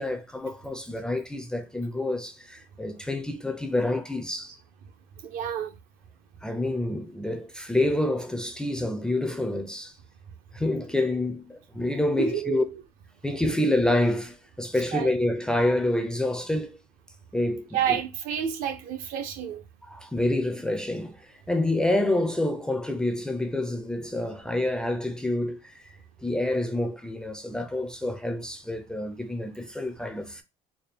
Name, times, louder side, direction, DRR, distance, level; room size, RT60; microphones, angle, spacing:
voice 1, 0.0-4.6 6.4-9.9 10.5-12.6 13.2-16.8 17.3-18.0 19.8-25.8 26.2-30.4, left 1 dB, 5° left, 0.4 m, -28 dB
voice 2, 5.2-5.7 12.2-12.7 14.9-15.1 17.7-19.6, right 8 dB, 70° right, 0.8 m, -29 dB
4.1 x 2.2 x 3.3 m
cardioid pair, 160°, 15 cm